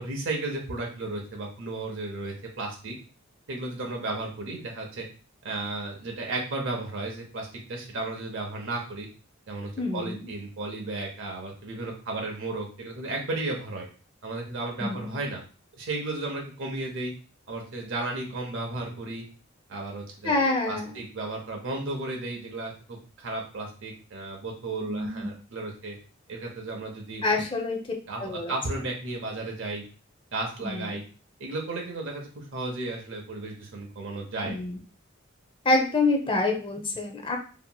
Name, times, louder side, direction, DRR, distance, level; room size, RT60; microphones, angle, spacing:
voice 1, 0.0-2.9 3.5-5.1 5.4-9.1 9.5-13.9 14.2-15.4 15.8-17.1 17.5-19.2 19.7-26.0 26.3-27.2 28.1-29.8 30.3-31.0 31.4-34.6, right 2 dB, 65° right, 0 dB, 0.7 m, -34 dB
voice 2, 9.8-10.3 14.8-15.1 20.2-21.0 24.8-25.3 27.2-27.8 28.2-28.5 30.6-31.0 34.4-34.8 35.6-37.4, left 2 dB, 25° left, 2 dB, 0.5 m, -27 dB
2.8 x 2.8 x 2.2 m, 0.37 s
head